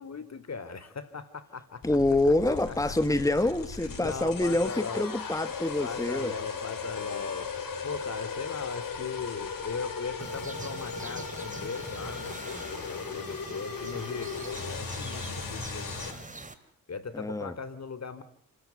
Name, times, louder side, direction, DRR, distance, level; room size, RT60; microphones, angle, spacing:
voice 1, 0.0-2.0 2.4-2.7 3.8-5.1 5.8-16.3 16.9-18.2, left 5 dB, 50° left, 12 dB, 3.2 m, -39 dB
sound 1, 1.8-16.1, left 5 dB, 70° left, 5.8 m, -37 dB
voice 2, 1.8-6.3 17.1-17.5, left 2 dB, 10° left, 10 dB, 1.6 m, -26 dB
sound 2, 10.2-16.5, right 2 dB, 20° right, 2.7 m, -43 dB
29.5 x 13.5 x 9.2 m, 0.64 s
cardioid pair, 70°, 34 cm